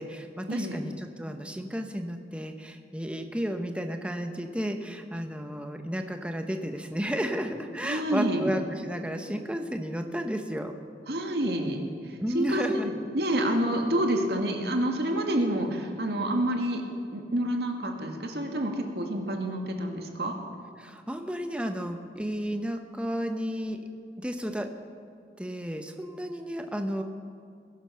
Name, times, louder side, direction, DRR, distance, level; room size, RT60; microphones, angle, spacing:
voice 1, 0.0-10.7 12.2-12.9 20.8-23.8 24.2-24.7 25.4-27.0, equal, 5° right, 5 dB, 0.9 m, -32 dB
voice 2, 7.8-8.5 11.1-11.8 12.3-16.8 17.1-20.4, right 1 dB, 70° right, 3 dB, 2.0 m, -28 dB
20.0 x 11.5 x 5.8 m, 2.2 s
head